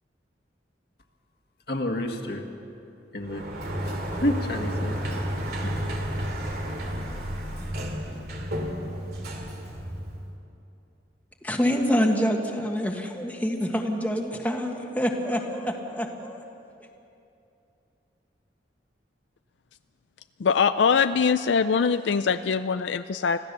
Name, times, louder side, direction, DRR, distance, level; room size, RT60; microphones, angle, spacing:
voice 1, 1.7-2.4 3.1-3.4 4.2-5.2 5.6-5.7, left 1 dB, 60° left, 3 dB, 1.8 m, -29 dB
Sliding door, 3.2-10.3, equal, 60° right, 2.5 m, -32 dB
voice 2, 11.4-16.4, equal, 10° left, 2 dB, 1.5 m, -26 dB
voice 3, 20.4-23.4, left 6 dB, 80° left, 11 dB, 0.4 m, -22 dB
25.0 x 16.0 x 6.8 m, 2.7 s
head